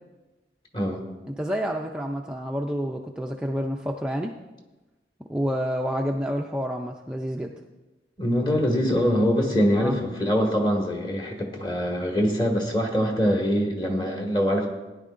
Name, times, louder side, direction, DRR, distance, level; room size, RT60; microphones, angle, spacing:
voice 1, 1.3-4.3 5.3-7.5 9.8-10.0, equal, 5° right, 0 dB, 0.4 m, -28 dB
voice 2, 8.2-14.7, equal, 25° left, 0 dB, 1.7 m, -23 dB
17.5 x 10.5 x 2.5 m, 1.1 s
head